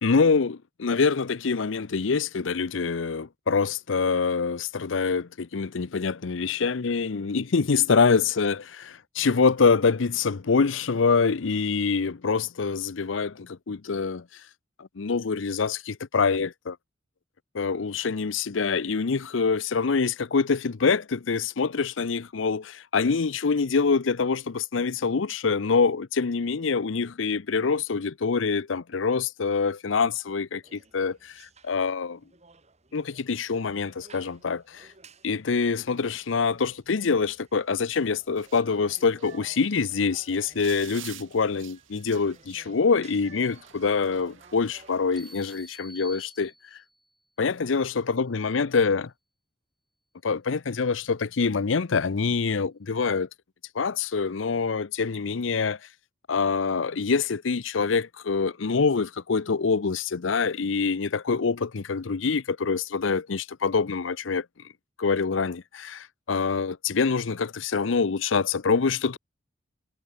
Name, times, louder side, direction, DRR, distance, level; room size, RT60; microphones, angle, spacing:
voice 1, 0.0-14.2 14.8-16.8 17.5-32.2 32.9-34.9 35.2-46.8 47.4-49.1 50.2-53.3 53.7-55.8 56.3-64.5 65.0-69.2, left 5 dB, 80° left, 0.6 m, -25 dB
sound 1, 30.6-45.8, right 3 dB, 35° right, 4.2 m, -56 dB
sound 2, 38.4-45.6, right 12 dB, 90° right, 2.4 m, -49 dB
sound 3, 45.2-47.1, equal, ahead, 1.9 m, -48 dB
head